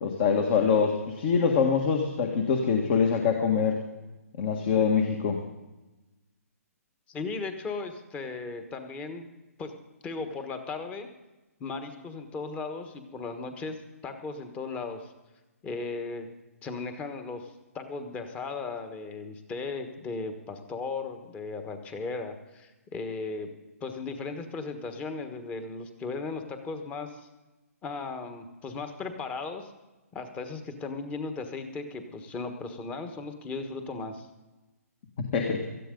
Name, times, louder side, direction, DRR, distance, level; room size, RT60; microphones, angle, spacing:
voice 1, 0.0-3.8 4.4-5.5 35.3-35.7, left 6 dB, 40° left, 3 dB, 1.8 m, -24 dB
voice 2, 7.1-9.3 9.6-9.7 10.0-11.1 11.6-15.1 15.6-16.3 16.6-23.5 23.8-27.3 27.8-29.7 30.1-34.3, left 4 dB, 15° left, 7 dB, 1.4 m, -36 dB
18.5 x 14.0 x 3.9 m, 1.1 s
hypercardioid pair, 145°, 8 cm